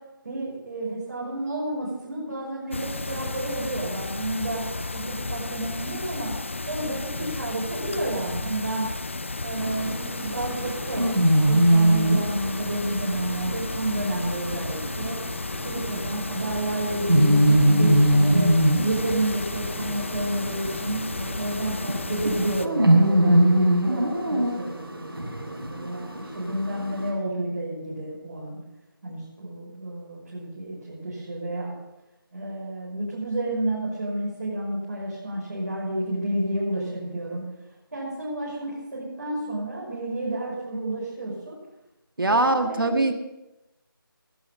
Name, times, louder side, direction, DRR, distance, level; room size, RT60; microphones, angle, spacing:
voice 1, 0.2-4.6 4.9-6.3 6.7-8.8 9.4-15.2 15.6-18.5 18.8-28.6 29.0-31.7 32.3-37.4 37.9-41.6 42.3-43.0, right 1 dB, 45° right, -7 dB, 5.6 m, -30 dB
sound 1, 2.7-22.7, left 3 dB, 30° left, 0.5 m, -33 dB
sound 2, 9.6-27.1, right 1 dB, 80° right, 7.1 m, -23 dB
voice 2, 42.2-43.2, right 2 dB, 65° right, 7 dB, 1.8 m, -22 dB
18.5 x 9.4 x 5.7 m, 0.95 s
figure-of-eight pair, 170°, 12 cm